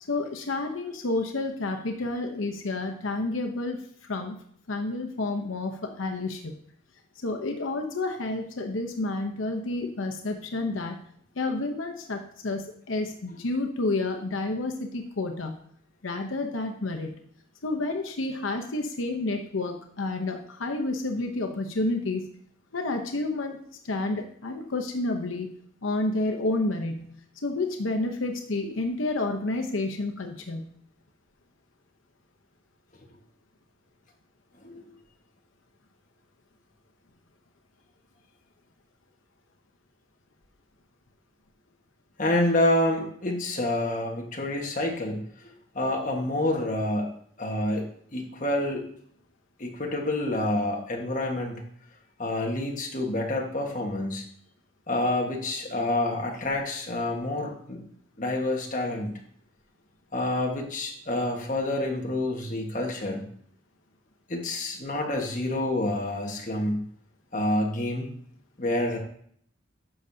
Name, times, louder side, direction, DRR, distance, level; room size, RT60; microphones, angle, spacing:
voice 1, 0.1-3.8 4.1-4.4 4.7-6.5 7.2-11.1 11.4-15.5 16.0-17.1 17.6-22.2 22.7-23.6 23.8-25.5 25.8-27.2 27.4-30.7, left 2 dB, 90° left, 4 dB, 0.9 m, -30 dB
voice 2, 42.2-47.1 47.4-48.9 49.6-51.6 52.2-54.2 54.9-57.8 58.2-59.1 60.1-63.2 64.3-66.8 67.3-68.1 68.6-69.0, left 1 dB, 40° left, 0 dB, 1.5 m, -28 dB
10.5 x 6.5 x 2.8 m, 0.62 s
head